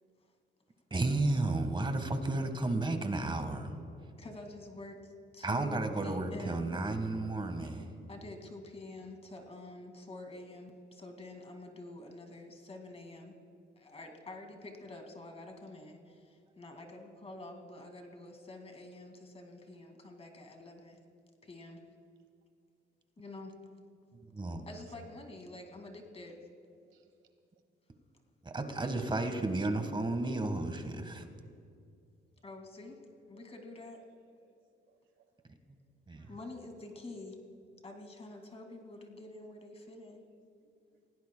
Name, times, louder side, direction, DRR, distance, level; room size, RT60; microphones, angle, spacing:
voice 1, 0.9-3.7 5.4-7.9 24.3-24.7 28.4-31.2 36.1-36.3, right 2 dB, 25° right, 7 dB, 1.5 m, -32 dB
voice 2, 4.2-6.7 8.1-13.4 13.8-21.0 21.4-21.8 23.2-23.6 24.7-26.4 32.4-33.0 33.3-34.0 36.3-37.4 37.8-40.2, left 2 dB, 30° left, 3 dB, 2.2 m, -48 dB
voice 3, 26.8-27.3 32.3-32.4 33.3-33.4 34.0-34.1 34.4-34.6 34.9-35.2 36.2-36.4 40.6-41.0, right 10 dB, 75° right, 7 dB, 1.3 m, -70 dB
26.0 x 17.0 x 2.3 m, 2.4 s
cardioid pair, 90°, 20 cm